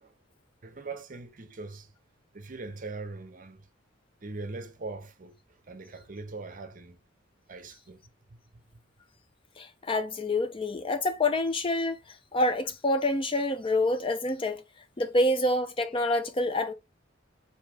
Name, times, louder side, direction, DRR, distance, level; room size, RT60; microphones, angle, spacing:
voice 1, 0.6-1.9 2.3-3.7 4.2-5.4 5.7-7.0 7.5-8.0, right 3 dB, 45° right, 0.7 m, -41 dB
voice 2, 9.6-12.0 12.3-14.6 15.0-16.7, left 2 dB, 25° left, 0.5 m, -27 dB
4.6 x 2.7 x 3.3 m
head